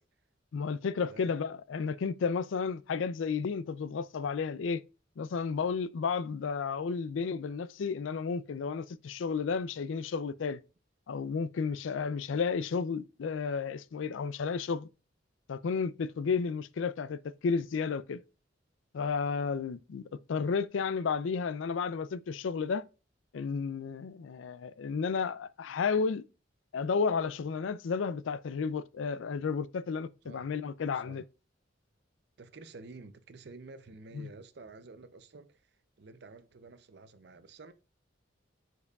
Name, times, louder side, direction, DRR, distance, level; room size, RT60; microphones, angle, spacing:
voice 1, 0.5-4.8 5.2-10.6 11.1-14.9 15.5-18.2 18.9-20.0 20.3-22.8 23.3-26.2 26.7-31.2 34.1-34.3, left 5 dB, 90° left, 0.4 m, -32 dB
voice 2, 1.1-1.4 12.0-12.1 30.2-30.5 30.9-31.2 32.4-35.7 36.0-37.7, right 3 dB, 60° right, 0.6 m, -50 dB
9.7 x 4.7 x 2.3 m
head